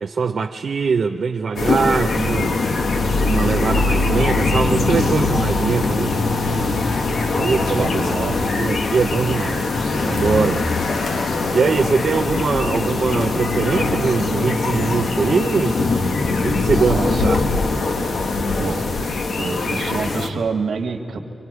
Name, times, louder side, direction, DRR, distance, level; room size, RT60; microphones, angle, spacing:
voice 1, 0.0-2.5 3.2-6.2 7.3-8.1 8.6-10.6 11.5-15.8 16.4-17.4, right 5 dB, 65° right, 3 dB, 0.6 m, -22 dB
sound 1, 1.6-20.3, left 3 dB, 80° left, 1.2 m, -21 dB
voice 2, 7.5-8.6 16.8-17.3 18.6-19.0 19.4-21.2, right 4 dB, 85° right, 3 dB, 1.4 m, -27 dB
26.0 x 24.5 x 4.8 m, 2.5 s
wide cardioid pair, 90°, 0 cm